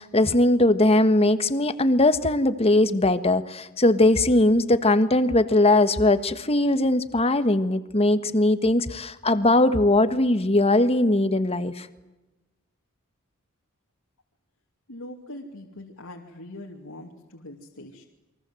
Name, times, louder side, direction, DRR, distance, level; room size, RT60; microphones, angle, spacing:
voice 1, 0.0-11.9, left 2 dB, 30° left, 11 dB, 1.5 m, -20 dB
voice 2, 14.9-18.0, left 1 dB, 75° left, 0 dB, 2.8 m, -42 dB
29.5 x 23.0 x 7.9 m, 1.1 s
head